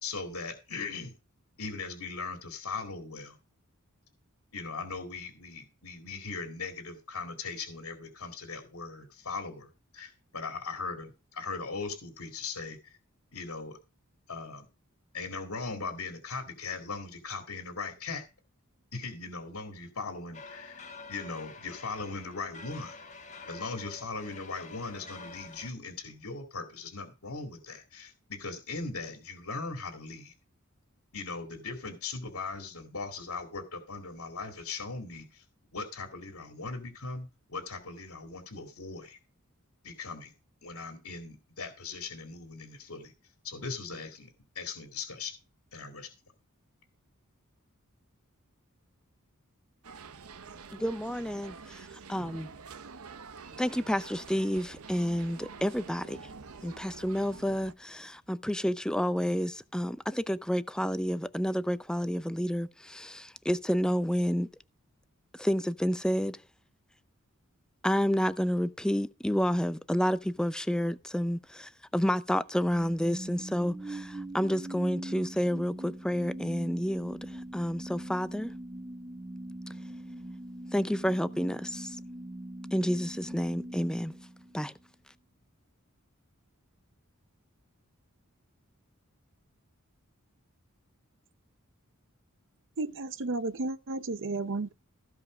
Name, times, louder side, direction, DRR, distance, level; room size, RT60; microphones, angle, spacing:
voice 1, 0.0-1.1 1.6-3.4 4.5-13.0 13.3-13.8 14.3-14.7 15.1-18.2 18.9-23.0 23.5-30.3 31.1-35.4 35.7-39.2 39.8-40.3 40.6-43.1 43.4-45.3 45.7-46.1, left 4 dB, 80° left, 2.2 m, -39 dB
sound 1, 20.3-25.7, left 3 dB, 35° left, 1.5 m, -47 dB
sound 2, 49.8-57.7, right 4 dB, 90° right, 0.9 m, -47 dB
voice 2, 50.7-52.5 53.6-56.3 56.6-64.5 65.4-66.4 67.8-78.5 80.7-82.0 82.7-84.1 84.5-84.7, equal, 5° left, 0.6 m, -30 dB
sound 3, 72.7-84.9, right 1 dB, 20° right, 1.2 m, -42 dB
voice 3, 92.8-94.7, right 3 dB, 60° right, 0.7 m, -33 dB
15.5 x 5.2 x 4.9 m
head